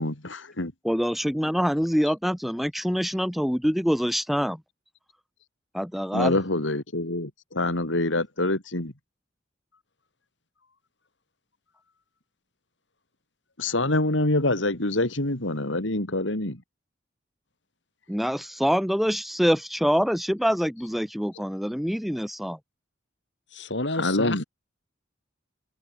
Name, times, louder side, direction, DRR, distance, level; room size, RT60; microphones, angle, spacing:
voice 1, 0.0-0.7 6.1-8.9 13.6-16.6 24.0-24.4, left 2 dB, 90° left, 3.4 m, -26 dB
voice 2, 0.8-4.6 5.7-6.3 18.1-22.6, equal, ahead, 1.3 m, -25 dB
voice 3, 23.5-24.4, left 2 dB, 65° left, 4.9 m, -30 dB
head